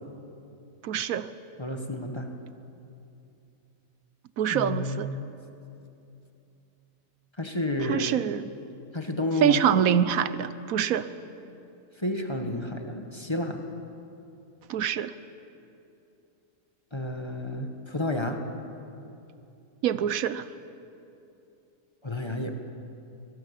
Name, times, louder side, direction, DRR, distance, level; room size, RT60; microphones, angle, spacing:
voice 1, 0.8-1.3 4.4-5.1 7.9-8.4 9.4-11.1 14.7-15.1 19.8-20.4, right 9 dB, 80° right, 14 dB, 1.2 m, -25 dB
voice 2, 1.6-2.3 4.5-5.2 7.4-8.1 8.9-9.6 11.9-13.6 16.9-18.4 22.0-22.5, left 1 dB, 20° left, 4 dB, 1.6 m, -31 dB
24.5 x 18.5 x 8.3 m, 2.8 s
omnidirectional pair, 1.5 m